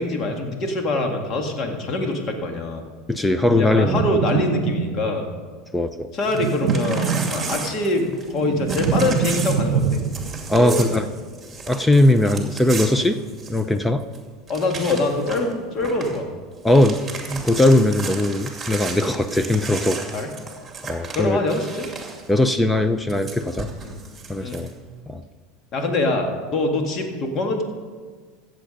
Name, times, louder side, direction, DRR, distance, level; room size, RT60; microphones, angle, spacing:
voice 1, 0.0-2.8 3.5-5.3 6.1-10.0 10.5-11.0 14.5-16.3 20.1-20.3 21.1-21.9 23.8-24.0 24.4-24.6 25.7-27.6, left 2 dB, 40° left, 3 dB, 2.0 m, -24 dB
voice 2, 3.1-4.0 5.7-6.1 10.5-11.1 11.7-13.2 13.5-14.0 16.6-17.0 17.3-20.0 20.8-21.4 22.3-23.7 24.3-24.7 25.1-25.2, left 1 dB, 5° left, 10 dB, 0.5 m, -19 dB
sound 1, 3.7-5.3 6.3-7.8 8.1-10.5, right 7 dB, 50° right, 1.0 m, -25 dB
Crumpling crinkling / Tearing, 6.2-8.4 8.7-13.8 14.1-14.2 14.5-15.5 15.8-16.2 16.5-22.3 23.1-24.7, right 4 dB, 15° right, 2.5 m, -34 dB
15.0 x 7.7 x 5.2 m, 1.5 s
supercardioid pair, 105°, 0 cm